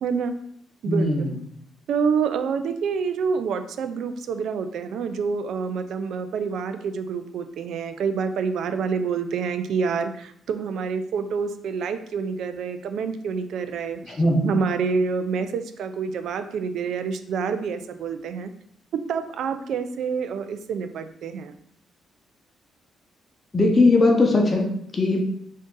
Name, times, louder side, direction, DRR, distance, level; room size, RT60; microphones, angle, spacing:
voice 1, 0.0-0.4 0.8-1.4 1.9-18.5 19.1-21.5, right 5 dB, 75° right, 9 dB, 0.3 m, -27 dB
voice 2, 0.9-1.3 14.1-14.5 23.5-25.2, left 2 dB, 30° left, 1 dB, 0.7 m, -19 dB
3.6 x 2.6 x 3.7 m, 0.67 s
cardioid pair, 90°, 0 cm